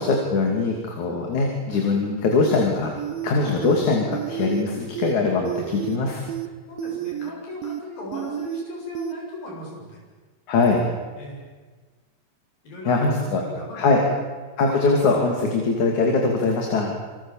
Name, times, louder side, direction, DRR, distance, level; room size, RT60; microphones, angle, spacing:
voice 1, 0.0-2.9 3.2-6.2 10.5-10.8 12.9-13.4 13.7-14.0 14.6-16.9, left 3 dB, 55° left, 1 dB, 4.1 m, -22 dB
sound 1, 3.0-3.3 3.6-3.8 4.1-4.6 5.0-5.1 5.5-6.0 6.3-6.5 6.8-7.3 7.6-7.8 8.1-8.6 9.0-9.1, right 12 dB, 80° right, 2.8 m, -30 dB
voice 2, 6.7-10.0 11.2-11.4 12.6-14.0, left 2 dB, 80° left, -1 dB, 9.5 m, -37 dB
28.0 x 25.0 x 7.4 m, 1.4 s
omnidirectional pair, 4.0 m